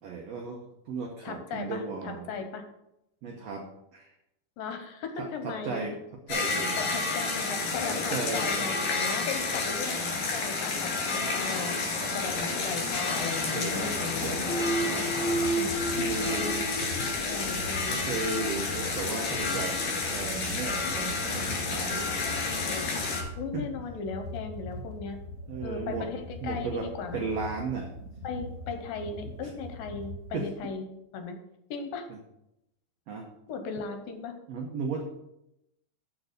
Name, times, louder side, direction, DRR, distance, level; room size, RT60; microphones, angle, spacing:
voice 1, 0.0-2.3 3.2-4.1 5.2-6.0 6.3-6.8 7.6-8.7 9.5-9.7 12.0-12.8 13.5-15.4 16.2-16.6 17.9-22.3 23.5-23.7 25.5-26.1 26.4-27.9 29.4-29.5 30.3-30.5 32.1-32.2 33.1-33.3 34.5-35.0, right 4 dB, 80° right, 2 dB, 1.5 m, -36 dB
voice 2, 1.2-2.6 4.6-5.9 6.8-14.7 15.6-16.6 17.0-18.3 19.2-19.6 21.0-21.6 22.6-22.8 23.3-25.2 25.6-27.2 28.2-30.9 31.1-31.4 31.7-32.1 33.5-34.3, left 5 dB, 75° left, 6 dB, 2.6 m, -37 dB
sound 1, 6.3-23.2, left 4 dB, 60° left, 3.4 m, -30 dB
sound 2, 14.5-18.1, right 2 dB, 50° right, 1.2 m, -32 dB
sound 3, 15.0-30.7, left 2 dB, 30° right, 1.4 m, -42 dB
7.1 x 6.7 x 6.5 m, 0.85 s
omnidirectional pair, 4.3 m